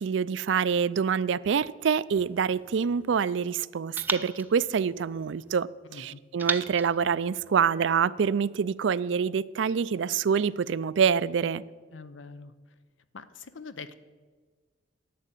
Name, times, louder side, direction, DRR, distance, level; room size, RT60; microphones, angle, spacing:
voice 1, 0.0-11.6, right 6 dB, 70° right, 0.4 m, -26 dB
sound 1, 2.2-3.4 4.0-5.6 6.4-8.0, right 3 dB, 10° right, 0.6 m, -37 dB
voice 2, 5.9-6.2 11.9-12.5 13.1-13.9, left 4 dB, 80° left, 0.7 m, -43 dB
11.0 x 8.8 x 8.3 m
head